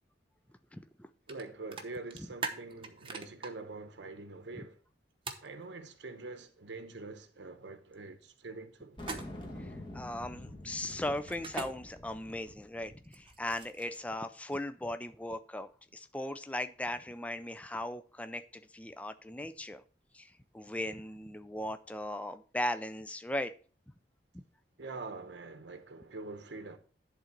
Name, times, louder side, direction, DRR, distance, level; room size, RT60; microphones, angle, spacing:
voice 1, 0.7-1.1 9.6-19.8 20.1-23.5, left 1 dB, 10° left, 0.4 m, -38 dB
sound 1, 1.3-1.4 1.7-3.5 5.3-5.5 9.0-9.5 11.3-11.7 13.0-14.0, right 3 dB, 30° right, 0.9 m, -40 dB
voice 2, 1.3-4.8 5.4-9.0 24.8-26.8, right 3 dB, 85° right, 0.8 m, -45 dB
sound 2, 9.0-13.6, left 1 dB, 30° left, 1.8 m, -47 dB
11.0 x 3.8 x 5.9 m
head